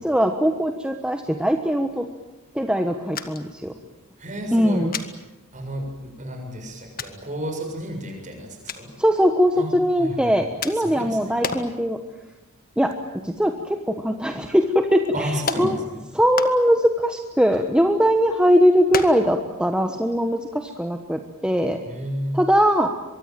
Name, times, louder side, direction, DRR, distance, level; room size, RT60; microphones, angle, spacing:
voice 1, 0.0-2.1 2.5-3.8 4.5-4.9 9.0-12.0 12.8-12.9 13.2-15.3 15.6-15.8 16.1-21.8 22.3-22.9, equal, 5° right, 5 dB, 1.2 m, -21 dB
sound 1, 3.1-3.6 3.8-3.9 4.9-5.1 6.0-6.1 7.0-7.2 8.7-8.9 10.6-11.0 11.4-11.8 12.2-12.3 12.7-13.6 13.9-14.0 14.8-14.9 15.5-15.7 16.3-16.9 17.4-18.1 18.9-19.4 19.7-19.8 20.1-20.2 20.6-20.8, left 5 dB, 40° left, 1.7 m, -31 dB
voice 2, 4.2-4.9 5.5-8.9 9.6-10.3 10.7-11.3 15.1-16.0 21.9-22.4, equal, 35° right, 3 dB, 7.0 m, -32 dB
24.0 x 23.5 x 9.1 m, 1.1 s
head